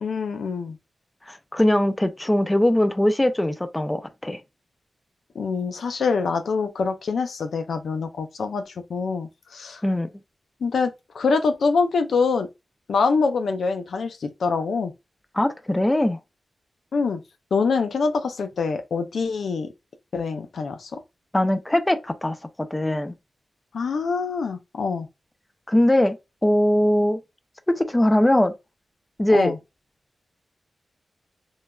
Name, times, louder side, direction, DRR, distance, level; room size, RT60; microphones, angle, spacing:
voice 1, 0.0-0.8 5.3-9.8 10.6-12.5 12.9-14.9 16.9-17.2 17.5-19.7 20.1-21.0 23.7-25.1 29.3-29.6, left 4 dB, 80° left, 0.4 m, -25 dB
voice 2, 1.3-4.4 9.8-10.1 15.4-16.2 21.3-22.4 22.7-23.1 25.7-26.1 26.4-27.2 27.7-28.5 29.2-29.5, left 1 dB, 15° left, 0.4 m, -21 dB
3.1 x 2.2 x 2.2 m
wide cardioid pair, 95°, 0 cm